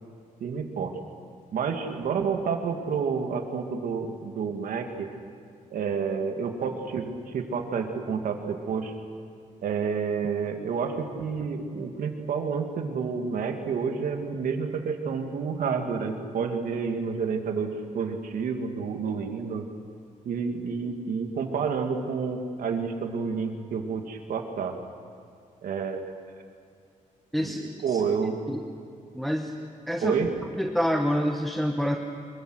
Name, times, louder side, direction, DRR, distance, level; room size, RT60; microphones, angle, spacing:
voice 1, 0.4-0.9 1.5-5.1 5.7-8.9 9.6-19.7 20.3-24.7 25.6-26.1 27.4-28.4 30.0-30.3, right 5 dB, 90° right, 4 dB, 2.4 m, -29 dB
voice 2, 27.3-28.0 28.5-28.6 29.1-29.5 29.9-30.2 30.6-32.0, equal, ahead, 2 dB, 1.0 m, -27 dB
25.5 x 23.5 x 6.5 m, 2.4 s
wide cardioid pair, 180°, 14 cm